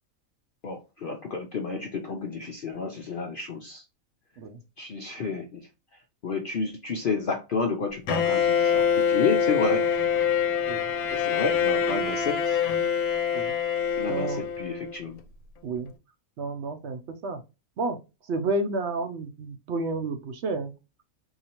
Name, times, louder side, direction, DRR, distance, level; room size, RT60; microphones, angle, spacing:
voice 1, 0.6-3.8 4.8-5.6 6.2-9.9 11.1-12.6 14.0-15.2, left 4 dB, 65° left, 0.5 m, -30 dB
Bowed string instrument, 8.1-15.0, left 7 dB, 85° left, 1.1 m, -25 dB
voice 2, 14.1-14.4 15.6-15.9 16.4-17.4 17.8-18.0 18.3-20.7, right 2 dB, 65° right, 0.7 m, -30 dB
4.0 x 2.8 x 2.8 m
omnidirectional pair, 1.5 m